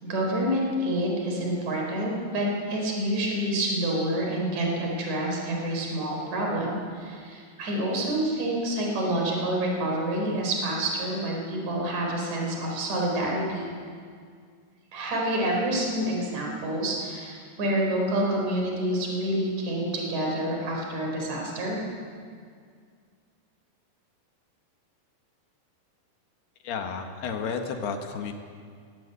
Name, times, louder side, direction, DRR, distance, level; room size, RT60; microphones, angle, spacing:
voice 1, 0.0-13.7 14.9-21.8, right 1 dB, 45° right, -1 dB, 5.6 m, -28 dB
voice 2, 26.6-28.3, left 5 dB, 75° left, 5 dB, 3.3 m, -32 dB
21.0 x 17.5 x 8.2 m, 2.1 s
omnidirectional pair, 4.8 m